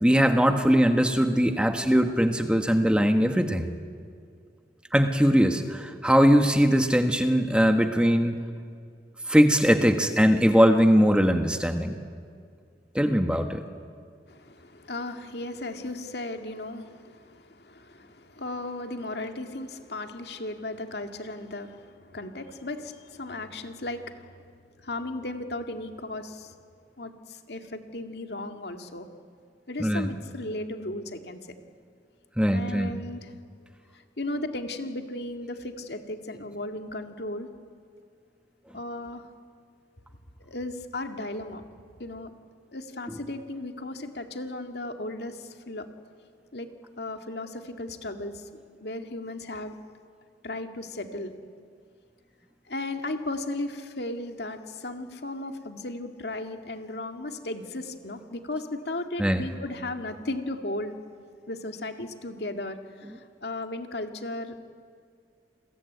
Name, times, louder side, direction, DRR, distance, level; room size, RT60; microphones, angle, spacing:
voice 1, 0.0-3.7 4.9-8.3 9.3-12.0 12.9-13.6 29.8-30.1 32.4-32.9 43.1-43.2 59.2-59.5, equal, 5° right, 6 dB, 1.4 m, -21 dB
voice 2, 14.3-24.3 24.8-26.5 27.0-27.1 27.5-29.1 29.7-31.4 32.5-33.3 34.2-37.5 38.7-39.2 40.4-41.6 42.0-42.3 42.7-45.4 45.7-45.9 46.5-46.7 47.0-48.4 48.8-49.7 50.4-51.3 52.7-61.0 61.5-62.8 63.4-64.6, left 2 dB, 70° left, 5 dB, 2.2 m, -35 dB
29.0 x 21.5 x 9.4 m, 2.2 s
head